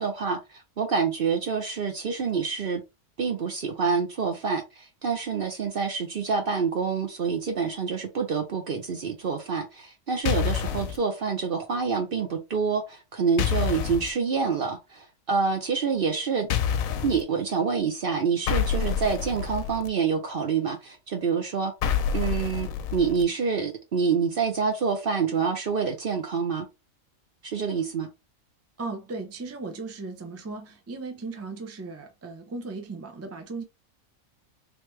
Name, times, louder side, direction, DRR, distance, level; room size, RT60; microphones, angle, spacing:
voice 1, 0.0-2.8 3.2-16.5 17.0-21.7 22.1-26.7 27.4-28.1, right 5 dB, 50° right, 0.7 m, -27 dB
sound 1, 10.3-11.0 13.4-14.1 16.5-17.2 18.5-19.9 21.8-23.2, left 8 dB, 90° left, 1.0 m, -27 dB
voice 2, 28.8-33.6, right 3 dB, 20° right, 0.5 m, -37 dB
3.4 x 3.1 x 3.1 m
omnidirectional pair, 1.4 m